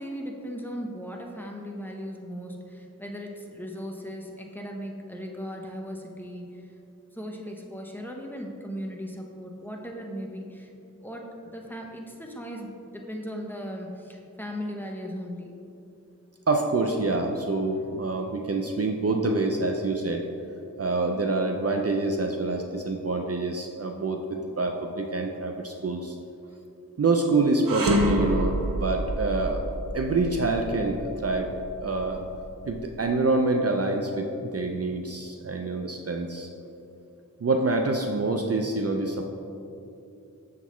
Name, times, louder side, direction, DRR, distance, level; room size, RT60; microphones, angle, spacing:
voice 1, 0.0-6.6 7.1-10.7 11.0-15.5, equal, 5° left, 0 dB, 0.8 m, -37 dB
voice 2, 16.5-20.3 20.8-26.2 27.0-29.6 29.9-31.5 31.8-32.2 32.6-36.5 37.4-39.3, right 3 dB, 45° right, 3 dB, 0.5 m, -26 dB
sound 1, 27.7-32.9, equal, 80° right, 0.7 m, -28 dB
6.9 x 5.9 x 3.1 m, 2.7 s
wide cardioid pair, 45°, 33 cm